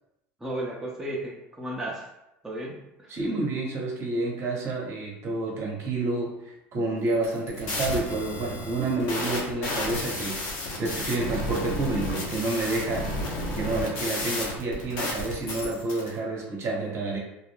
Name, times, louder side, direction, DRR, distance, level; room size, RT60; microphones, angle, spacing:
voice 1, 0.4-2.1 2.4-3.1, right 1 dB, 10° right, -4 dB, 0.6 m, -34 dB
voice 2, 3.1-13.1 13.5-17.2, right 2 dB, 45° right, -1 dB, 0.9 m, -29 dB
sound 1, 7.1-16.1, left 1 dB, 70° left, 0.9 m, -32 dB
2.4 x 2.0 x 3.3 m, 0.86 s
hypercardioid pair, 80°, 6 cm